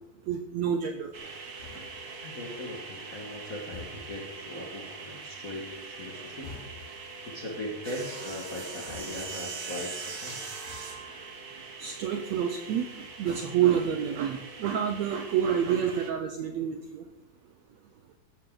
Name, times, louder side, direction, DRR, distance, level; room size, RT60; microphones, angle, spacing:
voice 1, 0.3-1.1 11.8-17.0, right 8 dB, 75° right, 6 dB, 1.7 m, -28 dB
sound 1, 1.1-16.1, right 4 dB, 50° right, 1.1 m, -42 dB
sound 2, 1.6-2.2 3.7-4.3 6.4-7.0 8.9-9.4 10.7-11.1 13.3-14.4 14.8-15.1, left 5 dB, 50° left, 5.9 m, -48 dB
voice 2, 2.2-6.6 7.2-10.5, left 1 dB, 35° left, -1 dB, 1.5 m, -39 dB
14.0 x 12.0 x 3.9 m, 0.98 s
omnidirectional pair, 4.0 m